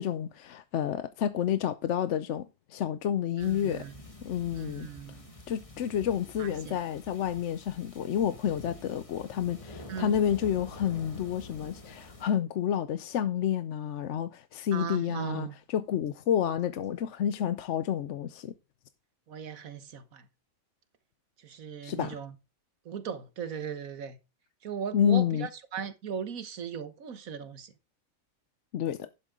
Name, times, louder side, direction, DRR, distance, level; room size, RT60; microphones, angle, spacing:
voice 1, 0.0-3.8 4.2-4.9 5.5-18.5 21.8-22.2 24.9-25.5 28.7-29.1, left 9 dB, 65° left, 0.9 m, -29 dB
sound 1, 3.4-12.2, left 2 dB, 25° left, 1.8 m, -48 dB
voice 2, 3.4-4.0 4.5-5.3 6.4-6.8 9.9-10.2 14.7-15.6 19.3-20.3 21.4-22.3 22.8-24.2 24.6-27.7, right 7 dB, 80° right, 1.6 m, -38 dB
11.5 x 8.0 x 3.7 m
omnidirectional pair, 1.4 m